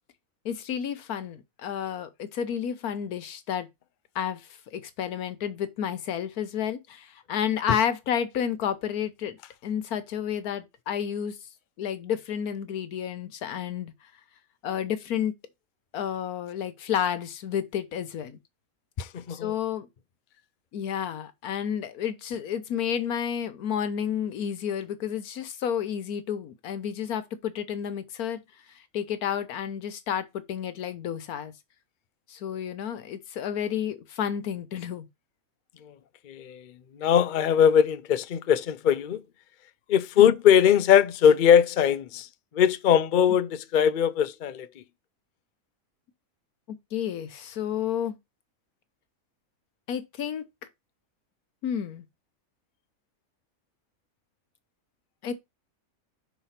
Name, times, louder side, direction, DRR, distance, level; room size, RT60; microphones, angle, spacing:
voice 1, 0.4-3.7 4.1-11.4 11.8-13.9 14.6-15.3 15.9-18.4 19.3-19.9 20.7-28.4 28.7-31.5 32.3-35.1 40.2-40.3 46.9-48.2 49.9-50.4 51.6-52.0 55.2-55.3, left 9 dB, 85° left, 1.4 m, -31 dB
voice 2, 19.0-19.5 36.3-36.7 37.0-39.2 39.9-42.3 42.5-44.7, left 9 dB, 60° left, 0.5 m, -21 dB
5.8 x 4.0 x 5.7 m
omnidirectional pair, 1.5 m